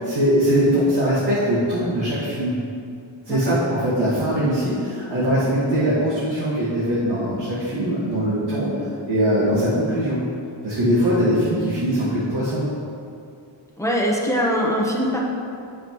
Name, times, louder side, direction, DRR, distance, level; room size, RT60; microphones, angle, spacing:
voice 1, 0.0-2.6 3.3-10.2 10.6-12.7, equal, 55° right, -9 dB, 1.7 m, -21 dB
voice 2, 13.8-15.2, equal, 5° left, -3 dB, 0.9 m, -22 dB
9.0 x 7.0 x 3.0 m, 2.5 s
wide cardioid pair, 150°, 48 cm